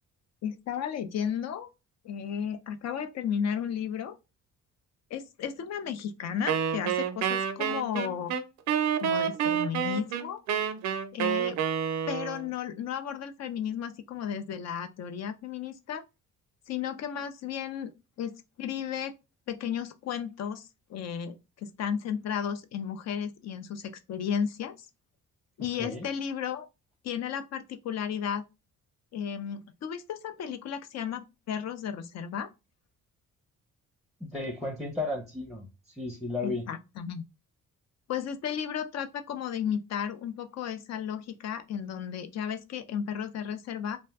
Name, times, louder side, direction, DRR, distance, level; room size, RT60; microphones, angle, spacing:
voice 1, 0.4-1.7 2.0-4.2 5.1-8.3 9.0-10.4 11.1-11.6 12.1-16.0 16.7-17.9 18.2-19.1 19.5-24.9 25.6-26.7 27.0-28.4 29.1-32.5 36.4-37.2 38.1-44.0, left 8 dB, 60° left, 0.5 m, -34 dB
Wind instrument woodwind instrument, 6.5-12.5, right 8 dB, 70° right, 0.5 m, -29 dB
voice 2, 34.2-35.7 36.0-36.7, left 2 dB, ahead, 0.6 m, -33 dB
2.5 x 2.1 x 3.4 m
cardioid pair, 90°, 30 cm